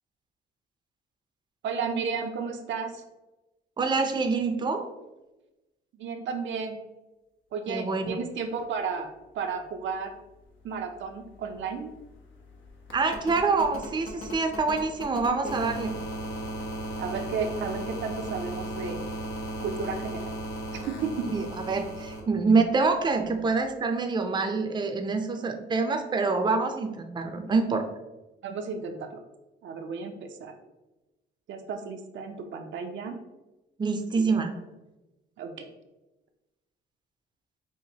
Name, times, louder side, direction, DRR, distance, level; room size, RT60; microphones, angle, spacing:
voice 1, 1.6-3.0 5.9-6.8 7.5-9.1 9.3-10.1 10.6-11.9 15.4-15.6 17.0-19.0 19.6-20.3 20.7-21.3 28.4-29.2 29.6-30.5 31.5-33.2 34.2-34.4 35.4-35.7, right 5 dB, 70° right, 4 dB, 0.5 m, -33 dB
voice 2, 3.8-4.9 7.7-8.1 12.9-15.9 21.3-27.8 33.8-34.5, right 4 dB, 20° right, 5 dB, 0.5 m, -26 dB
sound 1, 11.0-11.1 11.3-22.2 23.6-23.7, equal, 85° left, 1.0 m, -36 dB
5.6 x 2.5 x 2.8 m, 1.0 s
cardioid pair, 90°, 20 cm